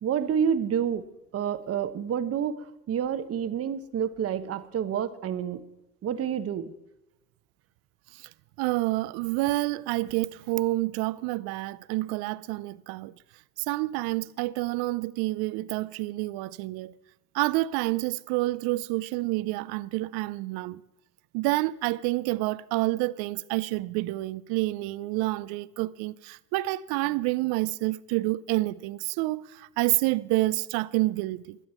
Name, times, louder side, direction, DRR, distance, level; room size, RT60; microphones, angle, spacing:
voice 1, 0.0-1.0 1.3-5.6 6.0-6.7, right 8 dB, 30° right, 0.9 m, -28 dB
voice 2, 8.6-13.2 13.6-16.9 17.3-20.8 21.3-31.6, right 20 dB, 50° right, 0.6 m, -28 dB
21.5 x 7.8 x 4.4 m
hypercardioid pair, 85°, 48 cm